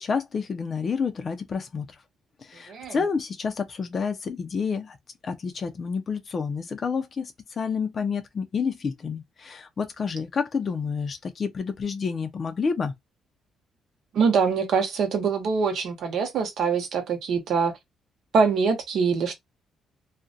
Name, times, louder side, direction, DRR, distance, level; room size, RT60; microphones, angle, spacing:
voice 1, 0.0-1.9 2.4-5.0 5.2-12.9, left 5 dB, 45° left, 0.4 m, -29 dB
voice 2, 14.1-17.7 18.3-19.3, right 5 dB, 70° right, 0.7 m, -24 dB
2.4 x 2.1 x 2.5 m
cardioid pair, 90°, 0 cm